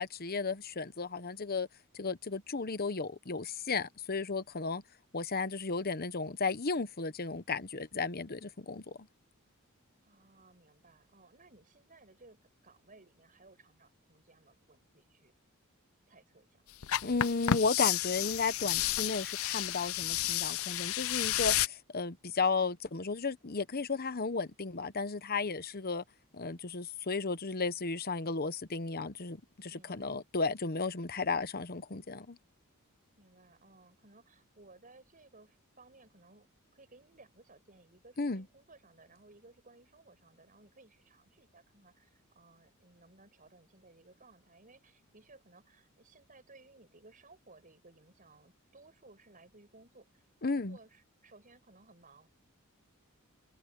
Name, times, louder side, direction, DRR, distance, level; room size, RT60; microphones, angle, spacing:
voice 1, 0.0-1.7 1.9-4.8 5.1-9.0 17.0-26.0 26.3-32.4 38.2-38.4 50.4-50.8, left 4 dB, 45° left, 1.0 m, -34 dB
voice 2, 10.0-15.3 16.1-16.6 29.7-30.3 33.2-50.2 50.5-52.3, right 3 dB, 40° right, 7.3 m, -60 dB
sound 1, 16.8-21.7, left 12 dB, 65° left, 0.5 m, -31 dB
head